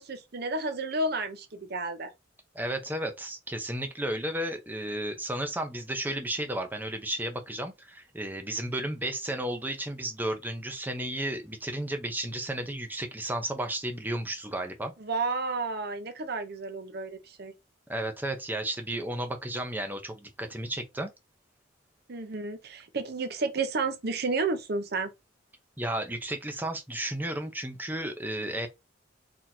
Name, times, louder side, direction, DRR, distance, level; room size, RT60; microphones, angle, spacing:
voice 1, 0.0-2.1 15.0-17.5 22.1-25.1, right 3 dB, 55° right, 0.7 m, -31 dB
voice 2, 2.5-14.9 17.9-21.1 25.8-28.7, right 1 dB, 10° right, 0.7 m, -33 dB
4.1 x 2.9 x 2.7 m
head